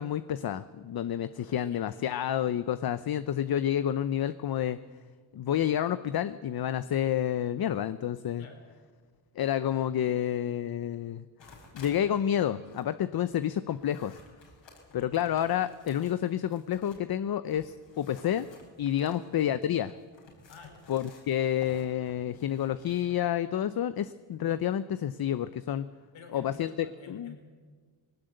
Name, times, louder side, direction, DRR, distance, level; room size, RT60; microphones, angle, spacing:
voice 1, 0.0-4.8 5.3-8.4 9.4-11.3 11.7-14.2 14.9-18.5 18.8-19.9 20.9-25.9 26.3-26.7 27.1-27.3, left 10 dB, 50° left, 13 dB, 0.7 m, -29 dB
voice 2, 1.2-1.9 8.4-8.6 14.9-15.1 18.9-19.2 20.5-20.8 26.1-27.4, left 4 dB, 85° left, 4 dB, 4.6 m, -51 dB
sound 1, 11.4-12.0 12.4-17.1 17.4-23.2, left 3 dB, 70° left, 5.9 m, -55 dB
20.0 x 18.0 x 7.9 m, 1.6 s
cardioid pair, 105°, 46 cm